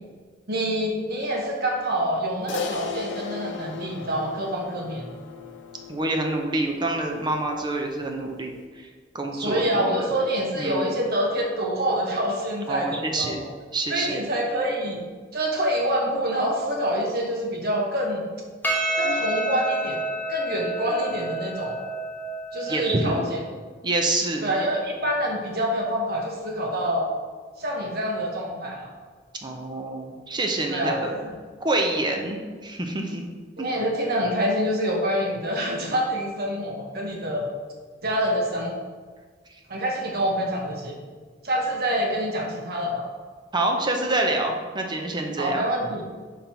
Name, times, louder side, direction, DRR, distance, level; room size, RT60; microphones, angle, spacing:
voice 1, 0.5-5.1 9.3-13.4 13.9-15.0 15.3-18.3 19.0-20.0 20.3-21.8 22.5-23.4 24.4-27.1 27.6-28.9 30.7-31.3 33.6-37.5 38.0-38.8 39.7-40.9 41.4-43.0 45.4-46.0, equal, 60° right, -1 dB, 1.1 m, -26 dB
Crash cymbal, 2.5-7.1, left 5 dB, 85° left, 0.6 m, -36 dB
voice 2, 5.9-8.6 9.1-10.1 10.6-11.0 12.7-13.5 13.7-14.2 22.7-23.3 23.8-24.5 29.4-31.1 31.6-32.4 32.6-33.2 33.6-33.7 43.5-45.6, right 2 dB, 25° right, 2 dB, 0.7 m, -26 dB
Percussion, 18.6-23.3, right 2 dB, 10° left, 1.1 m, -29 dB
5.3 x 4.3 x 4.4 m, 1.5 s
head